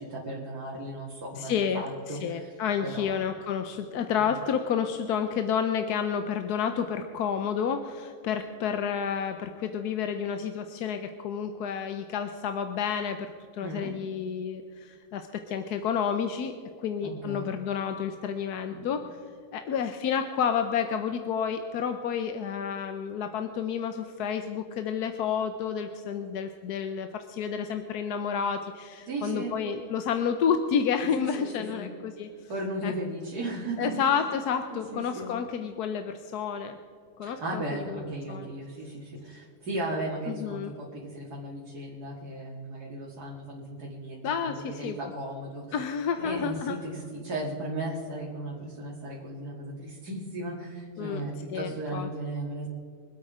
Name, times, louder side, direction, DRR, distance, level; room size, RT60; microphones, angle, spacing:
voice 1, 0.0-2.5 2.8-3.1 4.2-4.3 13.6-13.9 17.0-17.5 18.7-18.9 29.1-29.5 31.2-31.9 32.5-34.0 34.7-35.3 37.2-45.8 46.2-52.7, right 1 dB, 85° right, -4 dB, 2.6 m, -36 dB
voice 2, 1.4-19.1 19.5-32.3 32.8-32.9 33.8-36.8 37.2-37.6 37.9-38.5 40.3-40.7 44.2-45.1 45.7-46.8 51.0-52.1, left 7 dB, 85° left, 8 dB, 1.3 m, -30 dB
24.5 x 8.5 x 4.9 m, 2.2 s
omnidirectional pair, 1.6 m